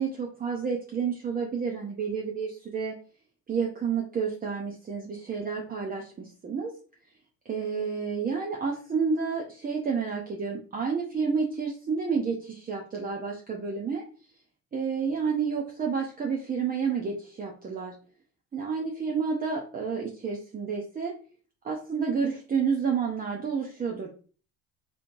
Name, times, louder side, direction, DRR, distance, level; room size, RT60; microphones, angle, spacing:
voice 1, 0.0-2.9 3.5-6.7 7.5-14.0 14.7-17.9 18.5-21.1 21.6-24.1, right 5 dB, 25° right, -1 dB, 0.7 m, -30 dB
3.3 x 3.0 x 2.6 m, 0.39 s
supercardioid pair, 100°, 32 cm